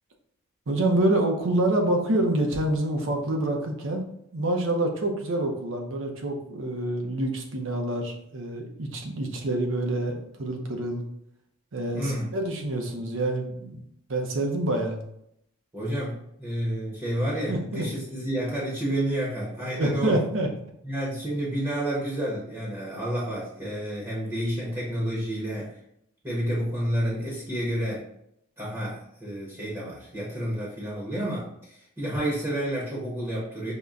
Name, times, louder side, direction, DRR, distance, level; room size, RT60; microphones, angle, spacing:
voice 1, 0.7-4.0 4.3-11.0 11.7-13.8 14.1-15.0 17.5-17.8 19.7-20.5, right 1 dB, 65° right, 2 dB, 0.6 m, -27 dB
voice 2, 11.9-12.3 15.7-20.2 20.8-25.8 26.2-28.1 28.6-33.7, right 1 dB, 15° right, -6 dB, 0.8 m, -30 dB
5.4 x 2.1 x 2.4 m, 0.75 s
head